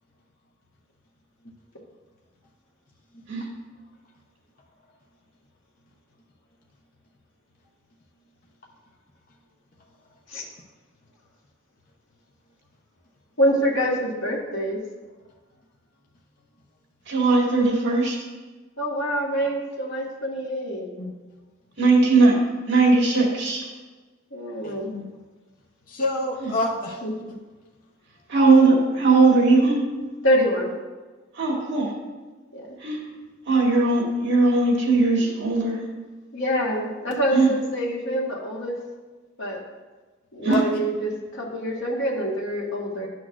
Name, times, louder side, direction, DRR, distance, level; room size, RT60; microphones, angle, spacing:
voice 1, 13.4-14.8 18.8-20.9 24.3-24.9 27.0-27.2 30.2-30.7 32.5-32.7 36.3-38.7 39.4-39.6 40.3-43.1, equal, 75° left, -3 dB, 1.5 m, -25 dB
voice 2, 17.1-18.2 21.8-22.4 22.7-23.6 26.4-26.5 28.3-29.8 31.4-31.9 32.8-33.0 33.5-35.8 37.3-37.5 40.4-40.6, right 3 dB, 60° right, -1 dB, 1.8 m, -19 dB
voice 3, 24.6-25.1 25.9-27.0 27.3-27.4 40.5-40.8, left 2 dB, 45° left, -1 dB, 0.8 m, -28 dB
11.0 x 6.2 x 2.5 m, 1.3 s
head